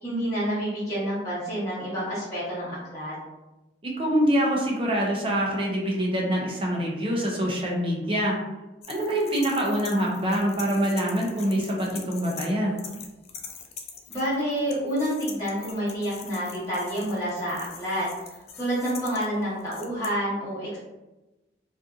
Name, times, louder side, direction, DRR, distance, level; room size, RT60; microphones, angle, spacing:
voice 1, 0.0-3.1 14.1-18.1 18.6-20.8, equal, 20° left, -11 dB, 1.1 m, -28 dB
voice 2, 3.8-8.4 8.9-12.8, equal, 30° right, -2 dB, 0.6 m, -25 dB
sound 1, 8.8-12.5 12.8-20.1, left 7 dB, 35° left, 0.3 m, -43 dB
2.6 x 2.4 x 2.4 m, 1.1 s
head